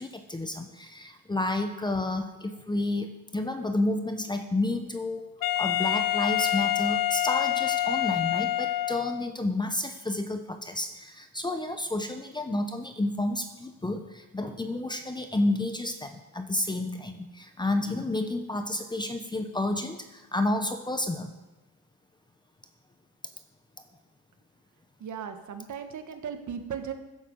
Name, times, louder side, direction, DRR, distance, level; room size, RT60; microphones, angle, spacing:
voice 1, 0.0-5.3 5.6-21.3, left 2 dB, 10° left, 7 dB, 0.9 m, -30 dB
Wind instrument woodwind instrument, 5.4-9.3, left 13 dB, 65° left, 0.7 m, -27 dB
voice 2, 25.0-26.9, right 7 dB, 55° right, 6 dB, 1.6 m, -37 dB
14.0 x 10.5 x 5.4 m, 1.1 s
cardioid pair, 135°, 36 cm